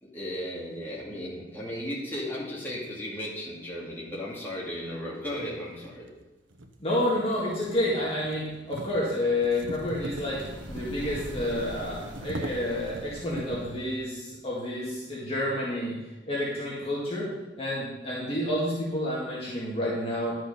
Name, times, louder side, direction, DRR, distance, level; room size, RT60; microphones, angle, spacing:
voice 1, 0.0-6.1, equal, 10° left, -6 dB, 2.6 m, -35 dB
sound 1, 4.9-5.0 5.8-13.8, right 1 dB, 80° right, 0.9 m, -41 dB
voice 2, 6.8-10.4 10.7-15.9 16.3-17.3 17.6-20.4, left 1 dB, 30° left, -7 dB, 1.9 m, -29 dB
sound 2, 9.4-14.1, equal, 60° right, 1.9 m, -43 dB
11.5 x 6.3 x 5.4 m, 1.1 s
head